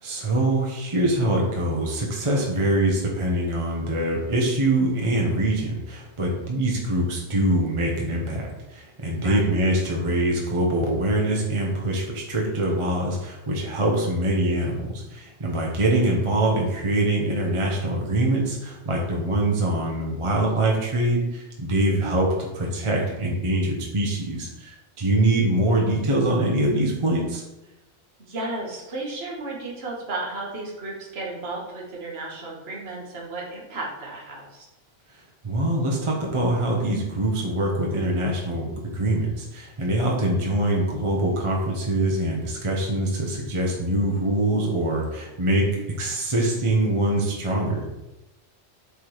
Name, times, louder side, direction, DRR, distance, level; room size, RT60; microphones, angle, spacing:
voice 1, 0.0-22.3 22.5-27.4 35.4-45.7 46.0-47.9, right 1 dB, 25° right, -2 dB, 1.0 m, -24 dB
voice 2, 28.2-34.7, right 2 dB, 60° right, -3 dB, 1.7 m, -33 dB
8.0 x 3.6 x 4.7 m, 0.97 s
omnidirectional pair, 1.2 m